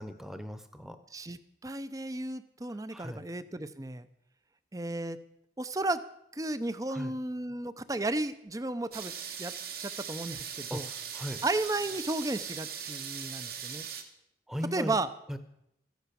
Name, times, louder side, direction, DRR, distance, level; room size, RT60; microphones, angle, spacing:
voice 1, 0.0-1.0 2.7-3.2 6.9-7.1 10.7-11.4 14.5-14.9 15.3-15.4, equal, ahead, 9 dB, 1.0 m, -38 dB
voice 2, 1.1-4.1 4.7-5.2 5.6-6.0 6.3-9.1 9.4-10.9 11.4-13.9 14.7-15.1, right 2 dB, 20° right, 14 dB, 0.6 m, -34 dB
sound 1, 8.9-14.0, right 8 dB, 55° right, 1.6 m, -40 dB
14.5 x 10.5 x 7.0 m, 0.80 s
head